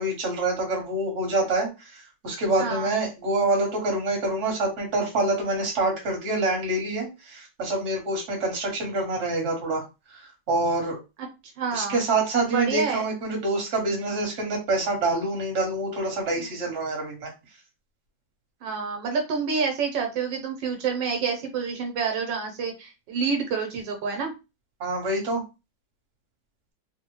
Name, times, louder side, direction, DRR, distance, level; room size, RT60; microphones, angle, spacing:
voice 1, 0.0-9.8 10.1-11.0 11.7-17.3 24.8-25.4, right 2 dB, 45° right, 0 dB, 1.3 m, -26 dB
voice 2, 2.6-2.9 11.6-12.0 12.5-13.1 16.4-16.5 18.6-24.3, right 5 dB, 80° right, 3 dB, 1.3 m, -28 dB
3.4 x 2.1 x 3.0 m, 0.27 s
omnidirectional pair, 2.0 m